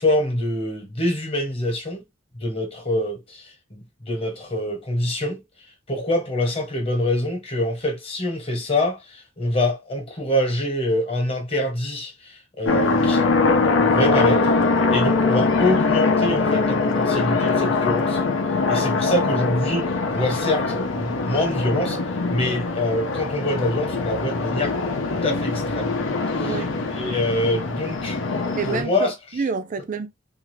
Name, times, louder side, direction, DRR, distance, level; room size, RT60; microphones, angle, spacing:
voice 1, 0.0-2.0 2.4-3.4 3.7-5.4 5.9-14.5 14.9-18.2 18.7-22.0 22.3-24.7 25.2-25.9 26.3-26.6 27.0-28.2 28.7-29.1, left 1 dB, 30° left, 1.0 m, -25 dB
sound 1, 12.7-28.8, left 3 dB, 90° left, 0.7 m, -22 dB
voice 2, 26.4-26.8 28.6-30.1, right 5 dB, 40° right, 0.4 m, -28 dB
2.6 x 2.4 x 3.1 m
head